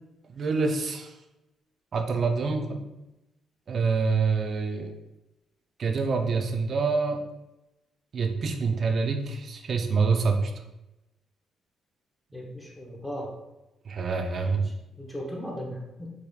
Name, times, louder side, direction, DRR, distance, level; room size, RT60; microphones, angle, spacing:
voice 1, 0.3-1.1 1.9-2.8 3.7-4.9 5.8-7.2 8.1-10.5 13.9-14.7, right 4 dB, 50° right, 4 dB, 0.5 m, -26 dB
voice 2, 12.3-13.3 15.0-16.1, equal, 10° left, -2 dB, 0.9 m, -37 dB
4.9 x 3.0 x 2.4 m, 0.94 s
cardioid pair, 90°, 0 cm